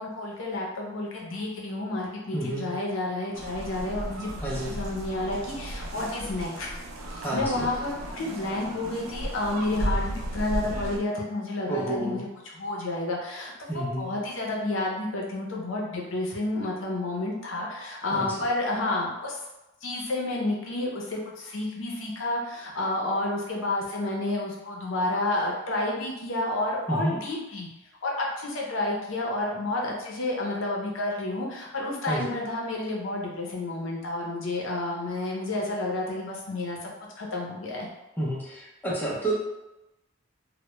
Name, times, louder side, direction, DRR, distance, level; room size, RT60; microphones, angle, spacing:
voice 1, 0.0-6.7 7.1-12.3 12.5-19.4 19.8-27.7 28.0-37.9, left 2 dB, 70° left, -2 dB, 0.5 m, -30 dB
voice 2, 2.3-2.7 4.4-4.8 7.2-7.7 11.7-12.2 13.7-14.1 18.1-18.4 26.9-27.2 32.1-32.3 38.2-39.3, right 1 dB, 10° left, -5 dB, 0.5 m, -30 dB
sound 1, 3.3-11.0, right 1 dB, 85° right, 0.4 m, -34 dB
2.2 x 2.0 x 2.9 m, 0.96 s
head